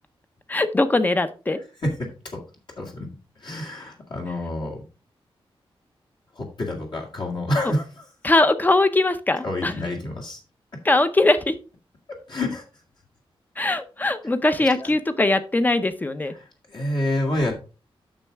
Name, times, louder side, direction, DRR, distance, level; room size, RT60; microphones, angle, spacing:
voice 1, 0.5-1.6 8.2-9.7 10.8-11.5 13.6-16.3, left 2 dB, 20° left, 11 dB, 0.7 m, -21 dB
voice 2, 1.8-2.4 2.8-3.1 3.4-4.8 6.3-8.0 9.4-10.4 12.1-12.6 14.6-14.9 16.4-17.5, left 1 dB, 55° left, -1 dB, 2.1 m, -28 dB
8.8 x 6.4 x 3.5 m, 0.32 s
wide cardioid pair, 145°, 10 cm